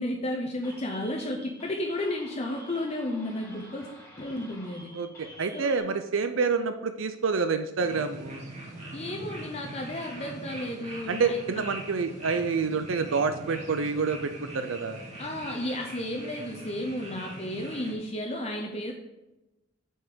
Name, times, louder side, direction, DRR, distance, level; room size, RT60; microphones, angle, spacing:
voice 1, 0.0-3.9 4.2-4.9 5.5-5.7 8.9-11.6 15.2-18.9, left 1 dB, 35° left, 1 dB, 0.8 m, -33 dB
sound 1, 0.6-5.8, equal, 15° left, 3.2 m, -49 dB
voice 2, 4.9-8.4 11.1-15.0, right 5 dB, 90° right, 9 dB, 0.5 m, -28 dB
sound 2, 7.8-17.9, right 1 dB, 35° right, 2.1 m, -42 dB
7.1 x 5.5 x 6.7 m, 1.0 s
head